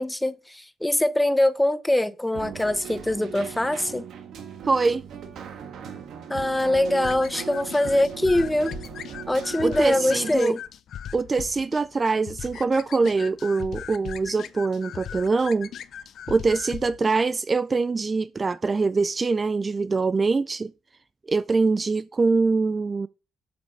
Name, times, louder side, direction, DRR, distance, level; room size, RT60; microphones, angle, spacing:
voice 1, 0.0-4.0 6.3-8.7 9.3-10.6, left 1 dB, 10° left, 0.7 m, -23 dB
Keyboard (musical), 2.3-10.3, right 8 dB, 75° right, 1.4 m, -38 dB
voice 2, 4.7-5.0 9.6-10.6 11.1-15.7 16.3-20.7 21.3-23.1, right 4 dB, 30° right, 0.3 m, -23 dB
sound 1, 7.0-17.2, left 9 dB, 65° left, 0.5 m, -39 dB
7.6 x 5.4 x 5.3 m
cardioid pair, 90°, 0 cm